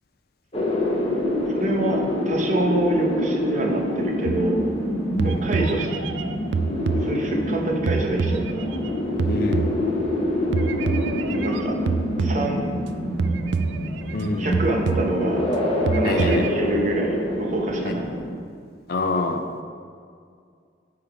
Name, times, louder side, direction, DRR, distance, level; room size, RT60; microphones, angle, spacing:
sound 1, 0.5-18.3, left 1 dB, 35° left, 0.9 m, -26 dB
voice 1, 1.5-4.6 5.2-5.9 6.9-8.7 11.3-11.8 12.2-12.7 14.4-15.4 15.9-18.1, right 2 dB, 45° right, 0 dB, 0.8 m, -26 dB
sound 2, 4.2-4.9 5.2-7.5 7.9-10.2 10.5-12.9 13.2-14.3 14.5-15.5 15.9-16.6, right 5 dB, 85° right, 0.4 m, -27 dB
voice 2, 9.2-9.7 14.1-14.6 16.0-16.4 17.9-18.0 18.9-19.4, left 2 dB, 55° left, 6 dB, 0.5 m, -26 dB
8.6 x 3.8 x 4.6 m, 2.2 s
head